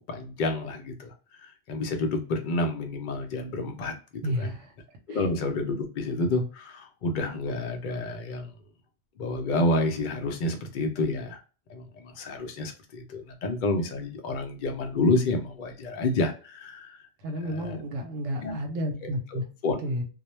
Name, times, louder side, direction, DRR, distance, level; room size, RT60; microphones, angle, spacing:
voice 1, 0.1-1.1 1.4-3.9 4.4-4.6 5.1-8.5 9.2-11.4 11.7-17.0 17.4-17.8 18.4-18.5 19.0-19.9, left 2 dB, 60° left, 0.5 m, -29 dB
voice 2, 4.2-4.7 5.1-5.3 17.2-19.4 19.8-20.0, equal, 90° right, 0.9 m, -31 dB
2.2 x 2.1 x 2.9 m
omnidirectional pair, 1.3 m